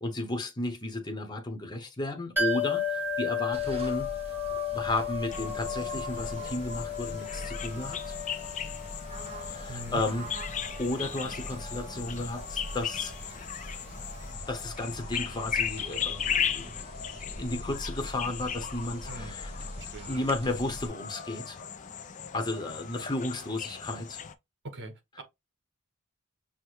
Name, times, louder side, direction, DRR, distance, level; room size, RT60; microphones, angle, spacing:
voice 1, 0.0-4.4 4.7-8.1 9.4-10.3 10.8-13.1 14.5-16.8 17.3-19.5 19.8-21.6 22.3-24.2, left 2 dB, 20° left, 0.9 m, -33 dB
sound 1, 2.4-14.0 14.2-14.3, left 6 dB, 10° right, 1.6 m, -35 dB
sound 2, 3.5-20.9, right 1 dB, 30° right, 0.9 m, -42 dB
sound 3, 5.3-24.3, left 8 dB, 35° left, 0.4 m, -37 dB
voice 2, 9.7-10.0 19.1-19.4 19.8-20.1 24.6-25.2, right 2 dB, 55° right, 1.2 m, -41 dB
6.1 x 2.1 x 3.0 m
head